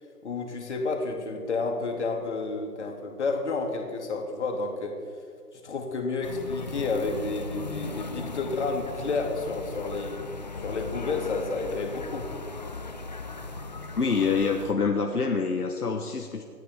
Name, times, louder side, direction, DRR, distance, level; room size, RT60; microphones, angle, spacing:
voice 1, 0.2-4.9 5.6-10.2 10.6-12.3, left 3 dB, 45° left, 2 dB, 2.5 m, -30 dB
sound 1, 6.2-14.7, left 3 dB, 25° left, 0.7 m, -37 dB
voice 2, 13.9-16.4, left 5 dB, 70° left, 3 dB, 1.4 m, -26 dB
27.5 x 9.6 x 3.6 m, 2.2 s
figure-of-eight pair, 150°, 48 cm